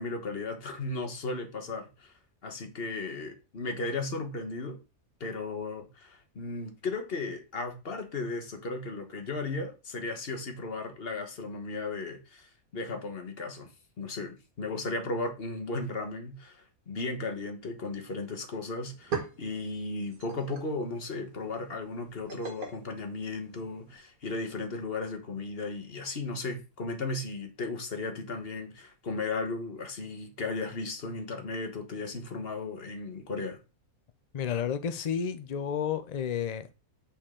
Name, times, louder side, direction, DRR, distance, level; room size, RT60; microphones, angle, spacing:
voice 1, 0.0-2.1 2.4-4.8 5.2-13.7 14.0-33.6, left 3 dB, 45° left, 1.4 m, -35 dB
sound 1, 18.9-24.0, right 5 dB, 75° right, 2.4 m, -42 dB
voice 2, 34.3-36.7, left 8 dB, 75° left, 0.3 m, -31 dB
8.5 x 4.4 x 3.7 m
omnidirectional pair, 1.5 m